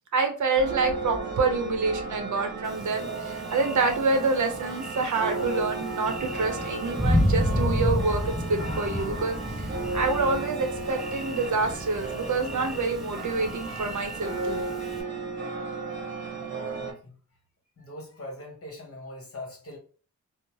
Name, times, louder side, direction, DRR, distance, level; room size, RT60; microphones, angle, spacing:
voice 1, 0.1-14.6, right 3 dB, 65° right, 5 dB, 0.7 m, -27 dB
sound 1, 0.6-16.9, right 3 dB, 35° right, 0.9 m, -34 dB
Thunder, 2.7-15.0, left 1 dB, ahead, 0.4 m, -31 dB
voice 2, 15.8-17.1 17.8-19.8, left 1 dB, 45° left, 0 dB, 1.1 m, -42 dB
2.7 x 2.0 x 3.0 m, 0.39 s
wide cardioid pair, 115°, 32 cm